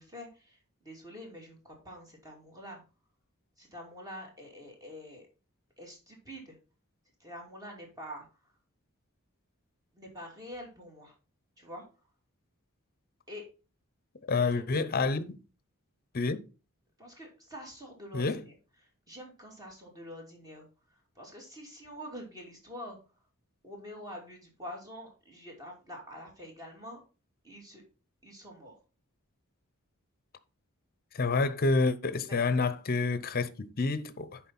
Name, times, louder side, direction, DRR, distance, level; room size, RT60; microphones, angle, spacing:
voice 1, 0.0-2.8 3.6-5.3 5.8-6.6 7.2-8.5 9.9-11.1 11.6-11.8 13.3-13.4 14.5-14.7 17.0-18.5 19.1-23.0 23.6-27.0 27.4-27.8 28.2-28.8 32.3-32.4, equal, 15° right, 2.6 m, -46 dB
voice 2, 14.3-15.4 16.1-16.4 18.1-18.4 31.1-34.4, left 3 dB, 45° left, 0.7 m, -28 dB
10.5 x 4.5 x 4.2 m
head